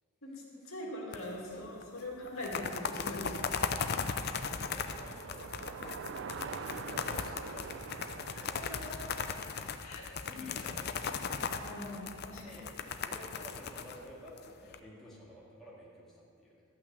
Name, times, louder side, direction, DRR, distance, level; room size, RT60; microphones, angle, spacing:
voice 1, 0.7-3.5 8.2-9.2 9.8-10.5 11.6-12.6, left 1 dB, 70° left, -3 dB, 2.5 m, -42 dB
sound 1, 1.1-1.6 1.8-1.9 2.3-14.8, left 5 dB, 50° left, 0.6 m, -37 dB
Bicycle, 2.3-10.5, right 5 dB, 55° right, 0.4 m, -46 dB
voice 2, 4.6-5.4 6.4-8.8 10.0-11.1 12.4-12.7 13.1-16.6, equal, ahead, -7 dB, 2.1 m, -52 dB
13.0 x 5.9 x 8.1 m, 2.3 s
head